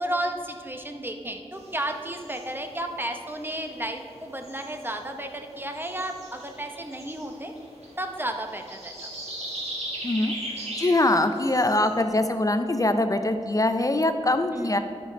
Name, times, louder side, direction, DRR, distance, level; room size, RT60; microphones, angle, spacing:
voice 1, 0.0-7.5 8.0-8.9 14.5-14.8, right 1 dB, 20° right, 4 dB, 0.8 m, -32 dB
sound 1, 1.5-12.0, right 1 dB, 75° right, 1.7 m, -40 dB
voice 2, 10.8-14.8, left 2 dB, 30° left, 8 dB, 0.4 m, -23 dB
10.0 x 5.1 x 5.1 m, 2.4 s
wide cardioid pair, 60°, 11 cm